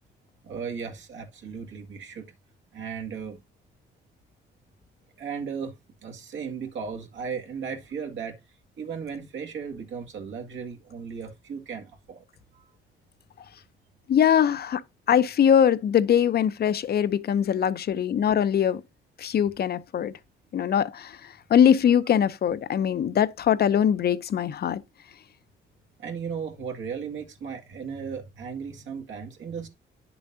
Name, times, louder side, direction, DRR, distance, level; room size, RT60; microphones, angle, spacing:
voice 1, 0.4-2.3 2.7-3.4 5.2-8.4 8.8-12.2 12.5-12.7 26.0-29.7, right 6 dB, 70° right, 2.1 m, -36 dB
voice 2, 14.1-14.8 15.1-18.8 19.2-20.1 20.5-21.2 21.5-24.8, left 9 dB, 50° left, 0.7 m, -22 dB
9.6 x 7.0 x 2.7 m
cardioid pair, 90°, 20 cm